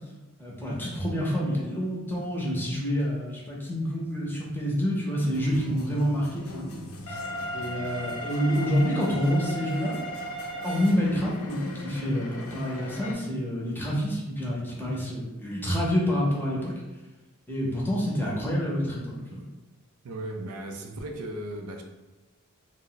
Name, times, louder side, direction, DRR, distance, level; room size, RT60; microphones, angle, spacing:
voice 1, 0.4-6.8 7.1-7.2 7.5-10.0 10.6-16.7 17.5-19.4, equal, 10° left, -5 dB, 0.6 m, -28 dB
sound 1, 5.3-13.1, left 1 dB, 65° left, 0.5 m, -37 dB
voice 2, 20.0-21.8, right 1 dB, 80° right, 3 dB, 0.4 m, -36 dB
2.4 x 2.1 x 3.8 m, 1.1 s
head